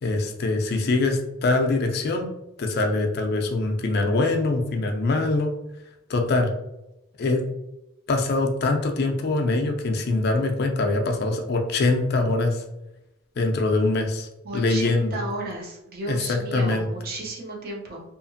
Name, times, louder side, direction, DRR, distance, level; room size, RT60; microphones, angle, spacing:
voice 1, 0.0-2.3 2.6-5.5 6.1-6.5 7.2-7.4 8.1-12.6 13.4-15.1 16.1-16.9, left 2 dB, 50° left, 3 dB, 0.4 m, -23 dB
voice 2, 14.4-18.0, right 2 dB, 45° right, -1 dB, 0.6 m, -33 dB
2.8 x 2.4 x 2.6 m, 0.91 s
head